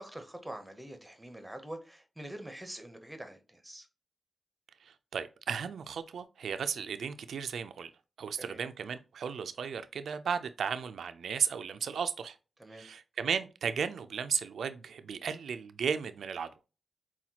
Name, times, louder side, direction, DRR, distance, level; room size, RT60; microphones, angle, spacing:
voice 1, 0.0-3.9 8.3-8.6 12.6-12.9, right 1 dB, 10° right, 0.7 m, -45 dB
voice 2, 4.8-7.9 8.2-12.4 12.7-16.5, right 6 dB, 90° right, 0.3 m, -35 dB
5.7 x 2.3 x 2.8 m
cardioid pair, 75°, 0 cm